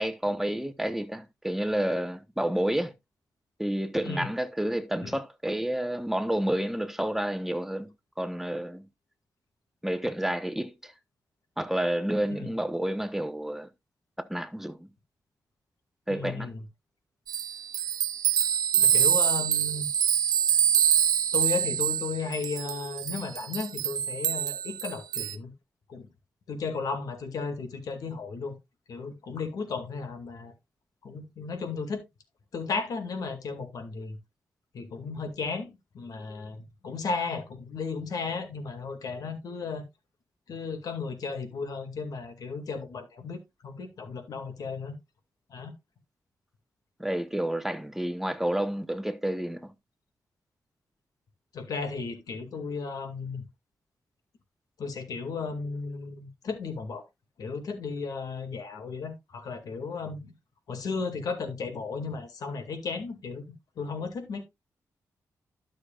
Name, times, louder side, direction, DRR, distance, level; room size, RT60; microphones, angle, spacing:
voice 1, 0.0-2.9 3.6-7.9 8.2-8.8 9.8-10.9 11.6-13.7 14.3-14.9 16.1-16.5 47.0-49.7, right 1 dB, 5° right, 1.0 m, -30 dB
voice 2, 16.1-16.6 18.8-19.9 21.3-25.5 25.9-26.1 26.5-28.5 28.9-30.5 31.0-32.0 32.5-34.2 34.7-35.7 35.9-39.8 40.5-44.9 45.5-45.7 51.5-53.4 54.8-57.0 57.4-60.3 60.7-63.4 63.8-64.4, left 4 dB, 75° left, 2.1 m, -34 dB
sound 1, 17.3-25.4, right 9 dB, 90° right, 0.5 m, -25 dB
12.0 x 6.5 x 2.4 m
cardioid pair, 90°, 6 cm